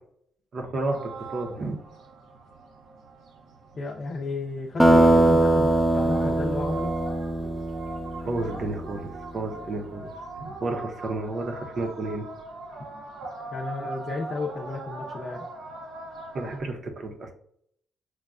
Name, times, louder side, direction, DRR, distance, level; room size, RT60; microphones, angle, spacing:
voice 1, 0.5-1.8 8.2-10.1 10.4-12.3 16.3-17.3, right 2 dB, 50° right, 3 dB, 0.7 m, -31 dB
sound 1, 0.8-16.6, right 2 dB, 85° right, 0.8 m, -41 dB
voice 2, 3.8-6.9 13.5-15.5, left 3 dB, 40° left, -2 dB, 0.5 m, -33 dB
sound 2, 4.8-9.1, right 1 dB, 5° right, 0.5 m, -21 dB
6.1 x 2.2 x 2.4 m, 0.67 s
cardioid pair, 90°, 0 cm